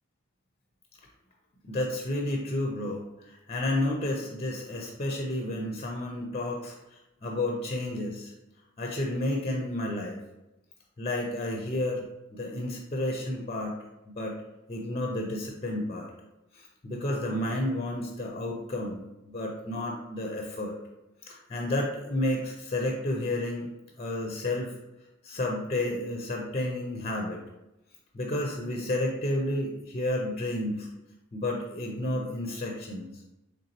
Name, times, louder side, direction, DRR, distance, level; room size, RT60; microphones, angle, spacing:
voice 1, 1.6-8.3 8.8-10.2 11.0-13.7 14.1-14.4 14.7-16.1 16.5-20.8 21.2-23.7 24.0-24.7 25.2-27.4 28.1-30.9 31.3-33.1, left 1 dB, 30° left, 0 dB, 0.4 m, -31 dB
3.9 x 3.2 x 2.9 m, 0.92 s
head